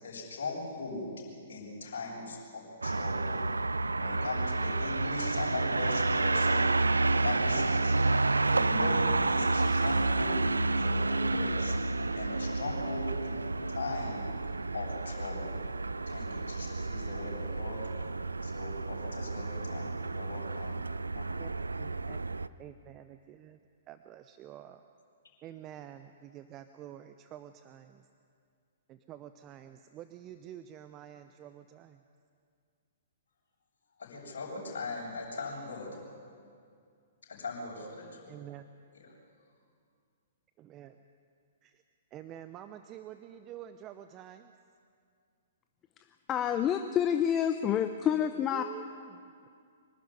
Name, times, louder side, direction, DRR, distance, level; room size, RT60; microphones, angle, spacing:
voice 1, 0.0-1.1 1.5-3.5 4.0-11.8 12.2-14.3 14.7-15.6 16.1-17.8 18.4-20.8 21.1-21.4 21.7-22.1 34.0-36.0 37.3-38.3 39.0-39.1, left 3 dB, 65° left, -4 dB, 7.0 m, -40 dB
sound 1, 2.8-22.5, right 3 dB, 85° right, 0.5 m, -30 dB
voice 2, 21.3-22.2 22.6-23.6 23.9-24.8 25.4-28.1 28.9-32.0 38.3-38.7 40.6-41.0 41.6-41.8 42.1-44.5 48.4-49.5, right 11 dB, 30° right, 10 dB, 0.7 m, -48 dB
voice 3, 46.3-48.6, left 9 dB, 25° left, 8 dB, 0.8 m, -28 dB
24.5 x 12.5 x 10.0 m, 2.3 s
figure-of-eight pair, 115°, 0 cm